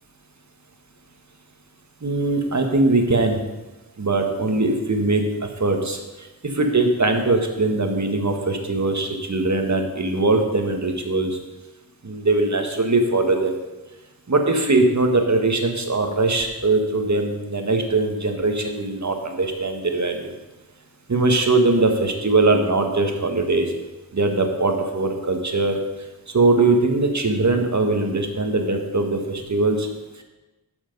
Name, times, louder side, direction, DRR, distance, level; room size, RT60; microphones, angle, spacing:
voice 1, 2.0-3.4 4.0-5.3 5.6-6.0 6.4-11.4 12.0-13.5 14.3-20.3 21.1-23.7 24.1-25.8 26.3-29.9, right 2 dB, 45° right, 4 dB, 1.6 m, -21 dB
12.0 x 7.1 x 5.4 m, 1.1 s
wide cardioid pair, 65°, 38 cm